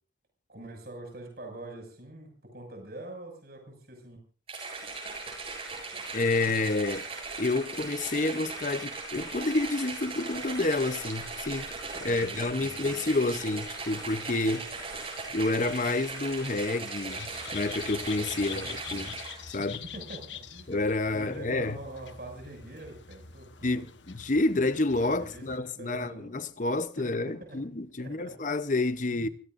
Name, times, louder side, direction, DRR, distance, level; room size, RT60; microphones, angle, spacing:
voice 1, 0.5-4.2 12.0-13.0 18.3-19.1 19.6-20.7 21.1-23.9 25.1-26.3 27.0-27.6 28.0-28.3 29.1-29.2, right 2 dB, 55° right, 6.4 m, -45 dB
sound 1, 4.5-19.6, right 3 dB, 30° right, 7.9 m, -38 dB
voice 2, 6.1-7.0 7.4-19.1 19.5-19.8 20.7-21.8 23.6-29.3, left 2 dB, 45° left, 0.8 m, -29 dB
sound 2, 17.1-25.6, left 7 dB, 85° left, 1.2 m, -45 dB
28.5 x 17.5 x 2.6 m
head